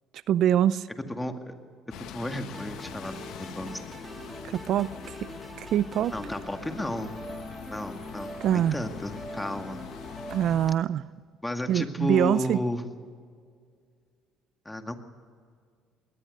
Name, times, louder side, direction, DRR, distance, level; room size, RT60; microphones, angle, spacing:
voice 1, 0.3-0.9 4.4-4.9 5.6-6.1 8.4-8.8 10.3-11.1 11.7-12.6, right 10 dB, 65° right, 17 dB, 0.5 m, -24 dB
voice 2, 1.1-1.5 2.1-3.8 6.1-7.1 7.7-9.8 11.4-12.8 14.7-15.0, left 1 dB, 10° left, 6 dB, 2.1 m, -33 dB
Bus, 1.9-10.8, left 11 dB, 75° left, 1.1 m, -44 dB
sound 1, 2.5-10.5, equal, 10° right, 2.4 m, -42 dB
21.5 x 18.5 x 6.6 m, 2.1 s
cardioid pair, 100°, 0 cm